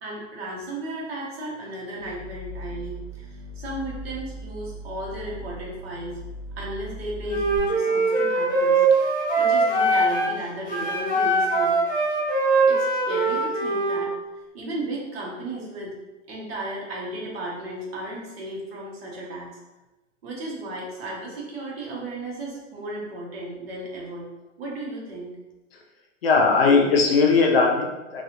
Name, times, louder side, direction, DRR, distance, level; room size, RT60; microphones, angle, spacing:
voice 1, 0.0-6.2 6.6-8.8 9.1-11.8 12.7-14.1 14.5-16.0 16.3-19.6 20.2-24.3 24.6-25.3, right 1 dB, 50° right, -4 dB, 0.9 m, -34 dB
sound 1, 1.9-7.6, equal, 80° right, 0.5 m, -38 dB
Wind instrument woodwind instrument, 7.3-10.4 10.6-14.0, right 2 dB, ahead, 0.5 m, -22 dB
voice 2, 26.2-28.2, left 4 dB, 50° left, 1 dB, 0.5 m, -19 dB
2.6 x 2.4 x 2.8 m, 1.1 s
hypercardioid pair, 175°, 39 cm